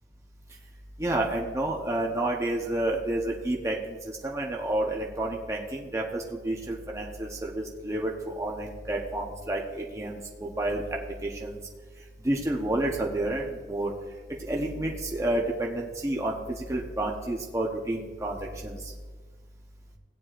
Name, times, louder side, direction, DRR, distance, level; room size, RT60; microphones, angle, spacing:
voice 1, 1.0-10.8 11.2-11.6 12.2-13.9 14.4-18.9, right 1 dB, 15° right, -1 dB, 0.9 m, -30 dB
17.0 x 9.4 x 2.5 m, 1.4 s
head